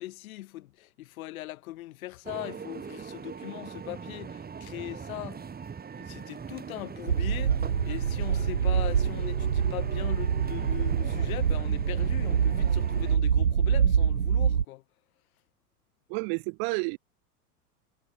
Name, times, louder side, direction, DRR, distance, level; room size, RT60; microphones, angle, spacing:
voice 1, 0.0-5.4 5.9-14.8, left 17 dB, 60° left, 4.6 m, -40 dB
sound 1, 2.2-13.2, right 6 dB, 20° right, 4.6 m, -40 dB
sound 2, 7.1-14.6, right 7 dB, 90° right, 1.1 m, -25 dB
voice 2, 16.1-17.0, right 40 dB or more, 50° right, 3.6 m, -30 dB
figure-of-eight pair, 90°, 47 cm